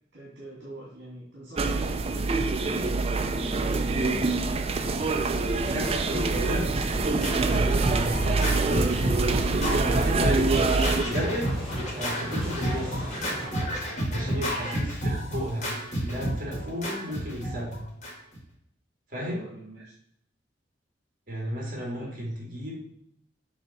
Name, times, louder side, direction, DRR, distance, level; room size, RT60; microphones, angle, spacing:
voice 1, 0.1-2.8 14.1-14.4 19.2-19.9 21.9-22.2, right 1 dB, 70° right, -6 dB, 2.1 m, -43 dB
sound 1, 1.6-11.0, right 3 dB, 35° right, 0.5 m, -25 dB
sound 2, 5.6-13.5, equal, ahead, 2.3 m, -40 dB
voice 2, 5.7-6.7 7.5-10.6 11.0-13.1 14.1-15.7 16.0-17.9 19.1-19.4 21.3-22.8, equal, 50° right, -3 dB, 2.3 m, -33 dB
Scratching (performance technique), 6.3-18.4, equal, 40° left, 2.0 m, -31 dB
7.1 x 3.3 x 4.2 m, 0.71 s
head